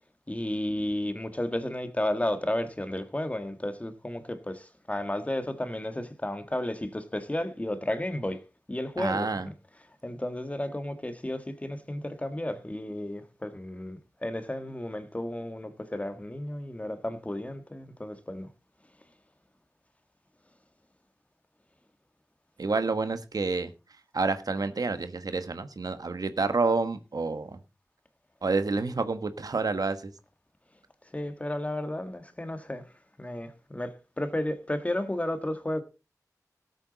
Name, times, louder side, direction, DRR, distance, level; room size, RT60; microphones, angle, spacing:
voice 1, 0.3-8.4 8.7-9.4 10.0-18.5 31.1-32.8 33.2-35.8, left 1 dB, 20° left, 1.7 m, -33 dB
voice 2, 9.0-9.5 22.6-23.7 24.1-27.6 28.4-30.1, right 3 dB, 75° right, 1.3 m, -28 dB
18.0 x 8.3 x 4.0 m
wide cardioid pair, 75°, 6 cm